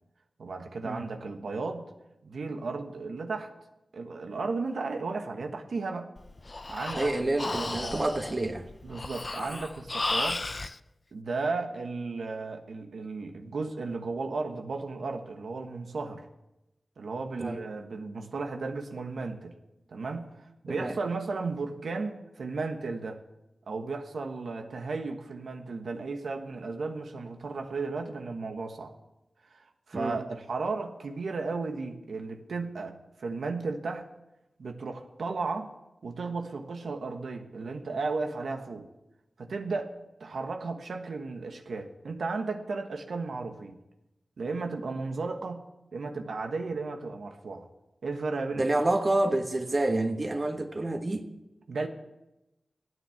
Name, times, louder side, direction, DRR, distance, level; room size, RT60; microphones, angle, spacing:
voice 1, 0.4-1.8 2.2-3.5 3.9-6.1 6.7-7.1 7.6-8.0 8.8-10.4 11.1-16.3 17.0-19.5 19.9-20.3 20.6-23.2 23.7-28.9 29.5-34.0 34.6-35.7 36.0-38.9 39.4-39.9 40.2-43.8 44.4-45.6 45.9-47.7 48.0-48.6 51.7-51.9, right 3 dB, 90° right, 5 dB, 1.3 m, -34 dB
Breathing, 6.2-10.8, left 2 dB, 35° left, 0.4 m, -34 dB
voice 2, 6.9-8.7 17.4-17.6 20.7-21.0 29.9-30.2 48.6-51.3, right 2 dB, 35° right, 5 dB, 1.2 m, -28 dB
14.0 x 9.3 x 7.2 m, 0.94 s
wide cardioid pair, 110°, 0 cm